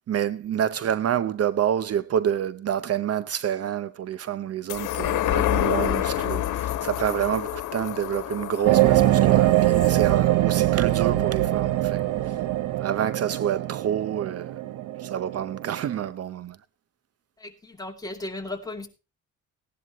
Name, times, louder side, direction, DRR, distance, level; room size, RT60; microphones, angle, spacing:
voice 1, 0.1-12.0 12.3-12.4 12.8-14.6 15.0-16.6, right 9 dB, 55° right, 0.7 m, -28 dB
sound 1, 4.7-11.5 11.9-12.0, left 13 dB, 80° left, 1.3 m, -29 dB
sound 2, 8.6-16.1, right 15 dB, 85° right, 1.0 m, -23 dB
voice 2, 17.4-18.9, left 2 dB, 10° left, 2.6 m, -35 dB
17.0 x 11.0 x 3.0 m
cardioid pair, 90°, 30 cm